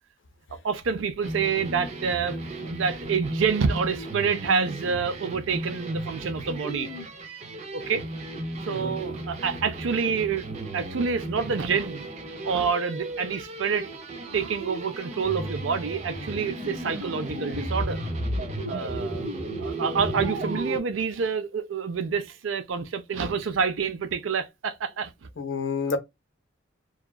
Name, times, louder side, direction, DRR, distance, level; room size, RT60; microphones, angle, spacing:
voice 1, 0.6-6.9 7.7-8.0 8.7-12.1 12.4-13.9 14.3-18.0 18.7-19.3 19.6-25.1, right 6 dB, 85° right, 0.5 m, -27 dB
sound 1, 1.2-20.8, right 2 dB, 35° right, 0.6 m, -36 dB
voice 2, 6.6-7.1 8.7-9.0 25.4-26.0, left 4 dB, 70° left, 0.6 m, -30 dB
sound 2, 15.2-20.8, equal, 55° right, 1.5 m, -34 dB
2.9 x 2.3 x 2.2 m
head